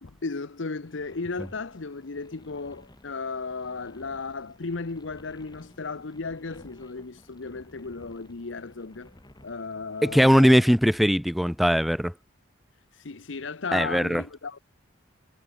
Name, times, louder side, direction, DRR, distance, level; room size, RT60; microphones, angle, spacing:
voice 1, 0.0-9.1 9.4-10.7 12.9-14.6, left 4 dB, 75° left, 0.9 m, -35 dB
sound 1, 0.8-10.2, left 1 dB, 20° left, 2.0 m, -54 dB
voice 2, 10.0-12.1 13.7-14.2, equal, ahead, 0.4 m, -20 dB
head